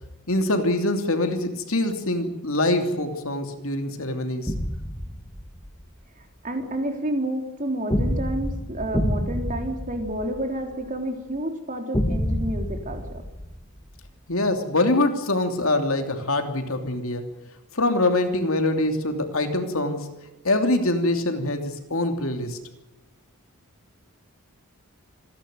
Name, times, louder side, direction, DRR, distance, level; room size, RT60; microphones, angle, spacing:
voice 1, 0.3-4.5 14.3-17.3 17.7-20.1 20.4-22.6, left 2 dB, 65° left, 6 dB, 2.9 m, -24 dB
sound 1, 4.5-5.8 7.9-10.9 11.9-14.1, equal, 15° left, 1.4 m, -28 dB
voice 2, 6.4-13.2, right 1 dB, 35° right, 4 dB, 3.6 m, -30 dB
27.0 x 12.0 x 9.4 m, 1.0 s
head